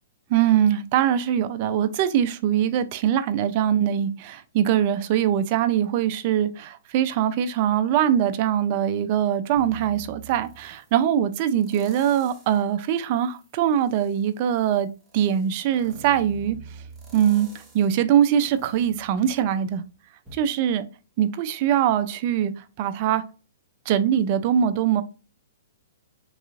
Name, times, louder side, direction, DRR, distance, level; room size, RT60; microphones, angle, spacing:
voice 1, 0.3-14.9 15.1-16.6 17.1-19.8 20.3-20.8 21.2-23.2 23.9-25.0, right 10 dB, 40° right, 0.4 m, -22 dB
sound 1, 9.6-11.0 11.6-12.6 13.1-19.8 20.3-20.4, right 4 dB, 10° right, 0.8 m, -46 dB
3.7 x 3.0 x 2.4 m
hypercardioid pair, 150°, 0 cm